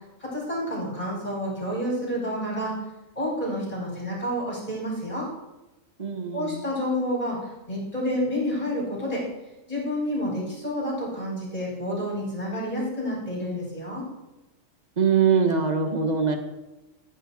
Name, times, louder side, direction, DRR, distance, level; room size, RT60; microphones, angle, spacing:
voice 1, 0.2-2.7 3.2-5.3 6.3-7.4 7.7-9.2 9.7-14.0, equal, 30° left, -4 dB, 4.3 m, -29 dB
voice 2, 6.0-6.6 15.0-16.4, right 6 dB, 35° right, 5 dB, 1.2 m, -22 dB
13.0 x 7.6 x 4.0 m, 1.0 s
omnidirectional pair, 1.4 m